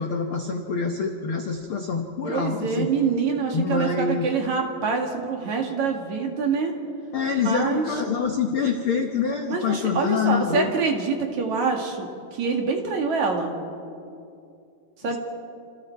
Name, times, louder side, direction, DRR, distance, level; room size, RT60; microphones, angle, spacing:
voice 1, 0.0-2.9 3.5-4.3 7.1-10.7, left 6 dB, 75° left, 4 dB, 1.2 m, -26 dB
voice 2, 2.2-6.7 7.4-7.9 9.5-13.5 15.0-15.2, right 5 dB, 55° right, 2 dB, 3.2 m, -25 dB
29.0 x 27.0 x 4.7 m, 2.5 s
omnidirectional pair, 4.3 m